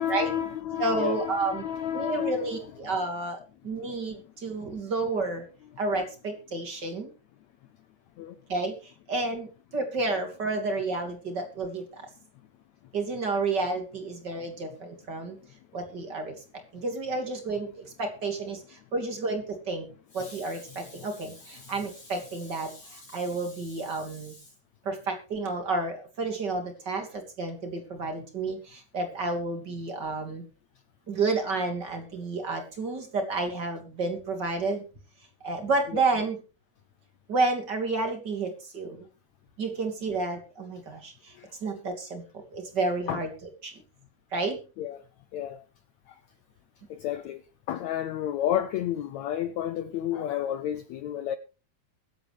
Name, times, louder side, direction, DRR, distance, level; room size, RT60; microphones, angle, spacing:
voice 1, 0.0-2.5 3.8-4.0 8.2-8.4 20.2-23.4 23.9-24.5 35.9-36.0 41.4-41.5 43.1-43.2 44.8-45.0 45.3-45.6 46.1-46.2 46.9-47.4 47.7-51.4, left 10 dB, 90° left, 1.5 m, -32 dB
voice 2, 0.8-1.6 1.9-5.5 5.8-7.1 8.5-12.1 12.9-15.4 15.7-16.4 16.7-19.9 20.1-24.4 24.8-30.4 31.1-34.8 35.4-36.4 37.3-39.0 39.6-41.3 41.6-42.2 42.5-43.3 43.6-43.7 44.3-44.6, right 3 dB, 30° right, 3.0 m, -30 dB
23.0 x 8.3 x 3.3 m
omnidirectional pair, 4.2 m